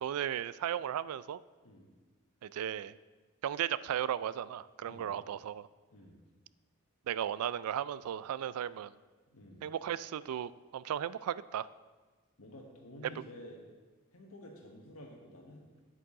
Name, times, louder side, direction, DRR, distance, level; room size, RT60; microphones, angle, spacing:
voice 1, 0.0-1.4 2.4-3.0 3.4-5.7 7.1-8.9 9.6-11.7, right 10 dB, 85° right, 18 dB, 0.3 m, -35 dB
voice 2, 1.6-1.9 4.8-5.1 5.9-6.2 9.3-9.7 12.4-13.6 14.1-15.7, equal, 85° left, 0 dB, 1.4 m, -51 dB
9.3 x 8.5 x 3.8 m, 1.3 s
head